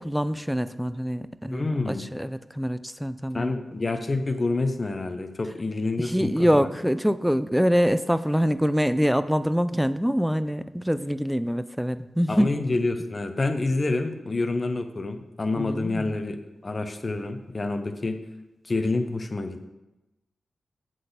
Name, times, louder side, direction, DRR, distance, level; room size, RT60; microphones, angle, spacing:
voice 1, 0.0-3.5 6.0-12.5 15.6-16.2, equal, ahead, 13 dB, 0.4 m, -25 dB
voice 2, 1.5-2.1 3.3-6.5 12.3-18.2 18.6-19.7, left 3 dB, 40° left, 7 dB, 0.8 m, -28 dB
7.5 x 4.1 x 6.7 m, 0.99 s
cardioid pair, 65°, 0 cm